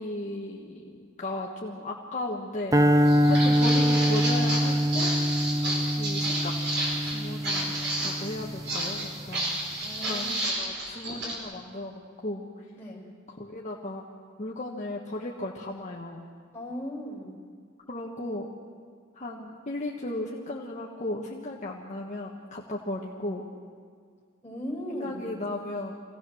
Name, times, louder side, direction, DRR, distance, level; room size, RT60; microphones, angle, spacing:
voice 1, 0.0-5.1 5.8-6.5 7.0-9.6 10.0-12.5 13.4-14.0 14.4-16.2 17.9-18.5 19.1-23.5 24.9-25.9, left 1 dB, 35° left, -3 dB, 1.5 m, -36 dB
sound 1, 2.7-9.1, equal, 15° right, 0.6 m, -24 dB
Walk footsteps, 3.0-11.4, right 1 dB, 60° right, 5.4 m, -31 dB
voice 2, 9.8-10.4 12.7-13.0 16.5-17.4 24.4-25.3, equal, 10° left, -5 dB, 5.7 m, -38 dB
25.5 x 17.5 x 6.4 m, 2.1 s
head